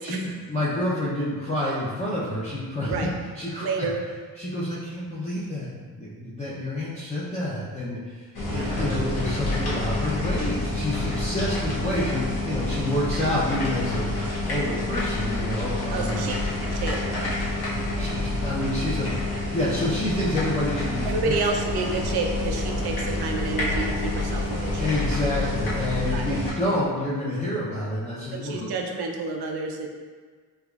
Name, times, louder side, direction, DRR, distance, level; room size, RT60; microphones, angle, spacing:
voice 1, 0.0-2.9 3.4-3.9 4.4-5.7 6.0-8.2 8.5-14.1 14.5-16.2 17.9-19.1 19.5-21.3 24.8-28.7, left 1 dB, 20° left, -9 dB, 0.5 m, -28 dB
voice 2, 3.6-4.0 8.5-8.8 15.9-16.4 16.7-17.0 21.0-24.9 26.1-26.4 28.3-29.9, right 3 dB, 75° right, 2 dB, 0.6 m, -29 dB
sound 1, 8.4-26.5, left 2 dB, 70° left, 0.9 m, -28 dB
3.5 x 3.0 x 2.3 m, 1.5 s
cardioid pair, 100°, 39 cm